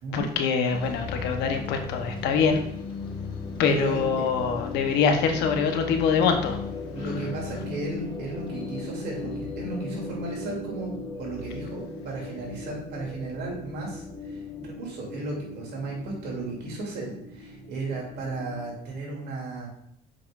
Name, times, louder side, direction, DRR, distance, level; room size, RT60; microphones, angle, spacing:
voice 1, 0.1-2.6 3.6-6.6, left 6 dB, 90° left, 5 dB, 1.0 m, -24 dB
sound 1, 0.7-18.8, left 3 dB, 30° left, 1.3 m, -37 dB
voice 2, 3.6-4.0 6.9-10.9 11.2-19.7, right 3 dB, 75° right, -2 dB, 2.9 m, -34 dB
7.8 x 5.9 x 2.5 m, 0.70 s
cardioid pair, 110°, 17 cm